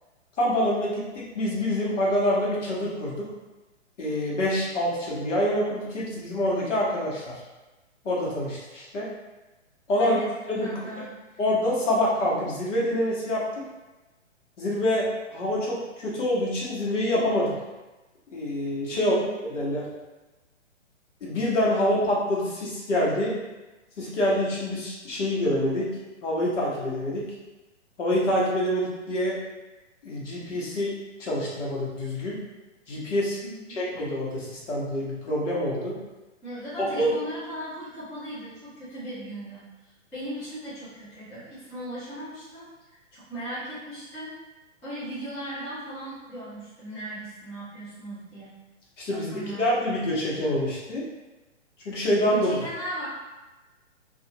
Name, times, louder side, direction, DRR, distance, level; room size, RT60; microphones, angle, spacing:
voice 1, 0.4-3.3 4.0-7.4 8.0-9.1 9.9-10.2 10.5-10.8 11.4-13.4 14.6-17.5 18.3-19.2 19.5-19.9 21.2-23.3 24.0-25.9 26.2-27.2 28.0-29.4 30.0-30.9 31.2-32.4 32.9-33.4 33.7-36.0 36.8-37.1 49.0-51.0 51.8-52.5, left 1 dB, 75° left, -5 dB, 1.1 m, -26 dB
voice 2, 10.6-11.4 18.9-19.4 33.4-33.8 36.4-39.6 40.1-42.7 43.1-44.3 44.8-48.5 49.1-49.8 52.3-53.1, right 1 dB, 5° left, -14 dB, 0.4 m, -38 dB
2.4 x 2.4 x 2.8 m, 1.1 s
hypercardioid pair, 135°, 37 cm